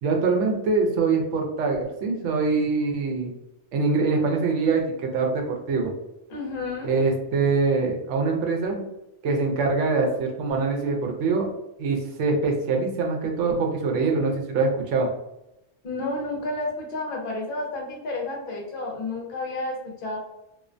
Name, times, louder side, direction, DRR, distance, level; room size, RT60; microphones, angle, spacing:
voice 1, 0.0-3.3 3.7-5.9 6.8-8.8 9.2-11.5 11.8-15.1, right 4 dB, 80° right, 2 dB, 0.9 m, -24 dB
voice 2, 6.3-7.1 15.8-20.2, left 2 dB, 55° left, -1 dB, 0.7 m, -31 dB
2.4 x 2.1 x 2.5 m, 0.86 s
omnidirectional pair, 1.2 m